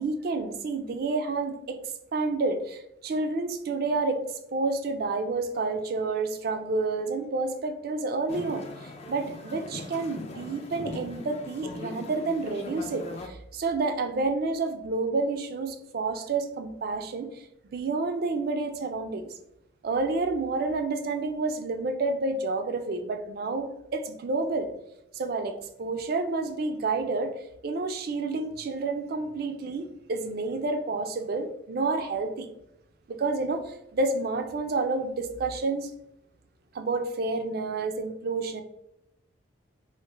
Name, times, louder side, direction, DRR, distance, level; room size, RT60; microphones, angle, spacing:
voice 1, 0.0-1.8 2.1-4.2 4.5-17.4 17.7-19.3 19.8-24.7 25.1-27.3 27.6-32.5 33.1-35.9 36.7-38.6, right 3 dB, 50° right, 8 dB, 0.3 m, -29 dB
sound 1, 8.3-13.3, left 2 dB, 30° left, 0.3 m, -40 dB
3.2 x 2.1 x 3.2 m, 0.81 s
head